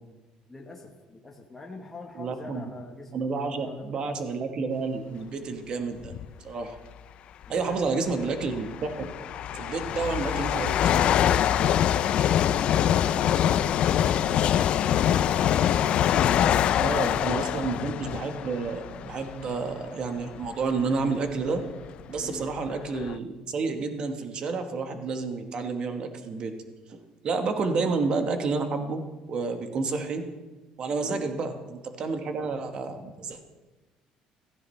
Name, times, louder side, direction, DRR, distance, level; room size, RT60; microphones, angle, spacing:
voice 1, 0.5-4.3 7.5-8.2 22.2-22.5 27.4-27.6 31.0-31.4, left 3 dB, 10° left, -1 dB, 1.2 m, -45 dB
voice 2, 2.2-2.6 3.1-6.1 6.4-6.8 7.5-9.1 9.5-10.9 16.8-21.6 22.1-26.5 26.9-27.0 27.2-29.0 29.3-30.2 30.8-33.4, right 4 dB, 40° right, 6 dB, 1.3 m, -30 dB
sound 1, 6.0-6.3 7.4-7.5 8.3-19.7 20.3-20.5 21.3-21.4 21.6-23.2, left 10 dB, 50° left, 0.4 m, -24 dB
16.0 x 14.5 x 3.3 m, 1.2 s
cardioid pair, 140°, 2 cm